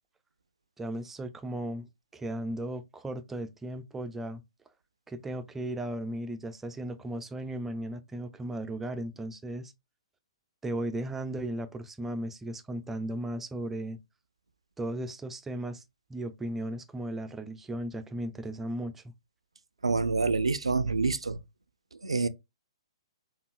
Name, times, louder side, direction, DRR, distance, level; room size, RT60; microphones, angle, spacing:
voice 1, 0.8-1.9 2.1-4.4 5.1-9.7 10.6-14.0 14.8-15.8 16.1-19.0, right 1 dB, 10° right, 0.3 m, -36 dB
voice 2, 19.8-21.4 22.0-22.3, right 4 dB, 85° right, 0.3 m, -27 dB
3.6 x 2.0 x 2.3 m
figure-of-eight pair, 125°, 3 cm